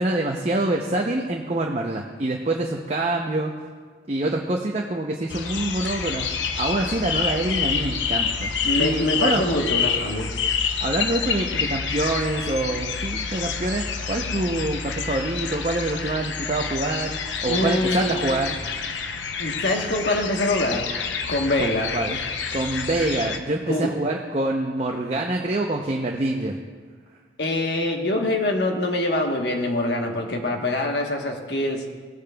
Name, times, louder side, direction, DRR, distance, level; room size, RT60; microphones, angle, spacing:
voice 1, 0.0-3.5 4.1-8.5 8.8-9.4 10.8-18.6 21.6-22.2 22.5-26.6, right 2 dB, 35° right, 0 dB, 0.6 m, -26 dB
sound 1, 5.3-23.4, left 6 dB, 85° left, 0.7 m, -28 dB
voice 2, 8.6-10.3 17.5-18.2 19.4-20.9 21.3-22.0 23.7-23.9 27.4-31.8, left 1 dB, 65° left, 2 dB, 1.2 m, -24 dB
17.0 x 8.5 x 2.3 m, 1.6 s
head